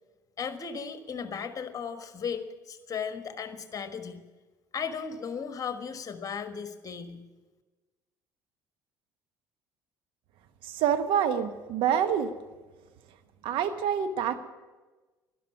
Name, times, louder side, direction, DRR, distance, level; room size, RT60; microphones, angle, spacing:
voice 1, 0.4-4.2 4.7-7.3, left 6 dB, 35° left, 8 dB, 1.4 m, -36 dB
voice 2, 10.6-12.3 13.4-14.4, right 8 dB, 60° right, 9 dB, 1.1 m, -26 dB
12.0 x 11.5 x 8.8 m, 1.2 s
hypercardioid pair, 60°, 10 cm